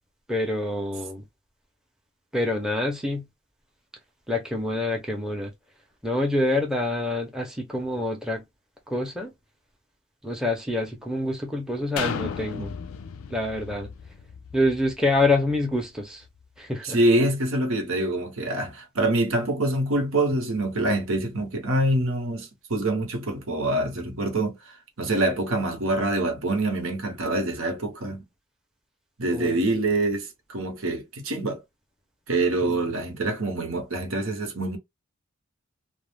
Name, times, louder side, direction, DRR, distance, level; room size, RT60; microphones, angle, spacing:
voice 1, 0.3-1.2 2.3-3.3 4.3-5.5 6.0-8.4 8.9-9.3 10.2-12.7 13.3-13.9 14.5-16.2 16.6-17.0 29.3-29.6 32.6-32.9, left 2 dB, 5° right, 0.6 m, -26 dB
sound 1, 12.0-15.7 16.3-16.4, left 7 dB, 90° left, 0.3 m, -35 dB
voice 2, 16.8-24.6 25.0-28.2 29.2-31.6 32.3-34.8, right 2 dB, 75° right, 0.9 m, -25 dB
2.3 x 2.0 x 3.3 m
head